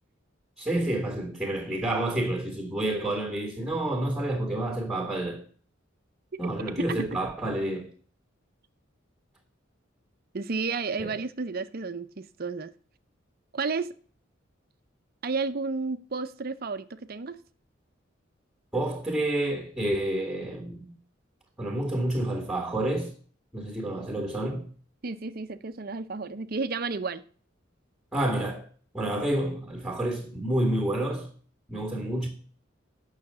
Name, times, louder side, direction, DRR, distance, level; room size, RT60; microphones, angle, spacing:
voice 1, 0.6-5.4 6.4-7.9 11.0-11.1 18.7-20.9 21.6-23.1 23.5-24.6 28.1-28.6 28.9-31.3 31.7-32.3, right 1 dB, ahead, 2.0 m, -29 dB
voice 2, 10.3-12.7 13.5-13.9 15.2-17.4 25.0-27.2, right 4 dB, 50° right, 0.6 m, -32 dB
8.8 x 6.5 x 6.8 m
head